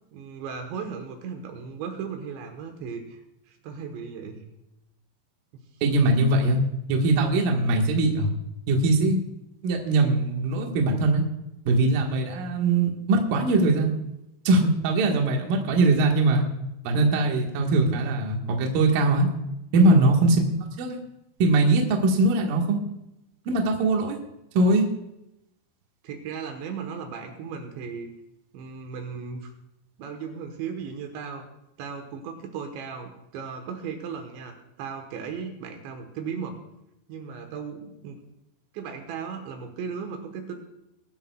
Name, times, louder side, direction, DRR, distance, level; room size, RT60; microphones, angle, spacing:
voice 1, 0.1-3.2 3.5-4.4 19.7-20.2 26.0-28.1 28.5-29.5 30.0-31.4 31.8-36.6 37.1-38.2 38.7-40.6, right 6 dB, 75° right, 4 dB, 3.3 m, -36 dB
voice 2, 5.8-6.6 6.9-8.3 8.7-9.2 9.6-11.2 11.7-13.9 14.4-16.5 16.8-19.3 19.7-20.4 20.8-21.0 21.4-22.8 23.5-24.2 24.5-24.9, right 2 dB, 60° right, 1 dB, 2.7 m, -21 dB
22.0 x 12.0 x 2.3 m, 0.86 s
omnidirectional pair, 5.4 m